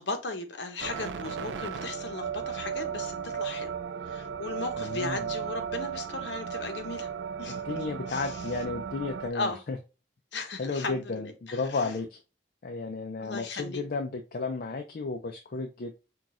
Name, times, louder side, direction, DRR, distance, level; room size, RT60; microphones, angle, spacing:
voice 1, 0.0-3.7 4.1-7.1 7.4-7.8 8.1-8.4 9.3-9.6 10.3-11.9 13.2-13.8, left 3 dB, 75° left, 0.8 m, -36 dB
sound 1, 0.8-9.3, right 7 dB, 90° right, 0.4 m, -35 dB
voice 2, 4.8-5.3 7.5-9.8 10.6-12.2 12.6-16.0, left 3 dB, 55° left, 0.5 m, -33 dB
5.8 x 2.3 x 2.4 m
head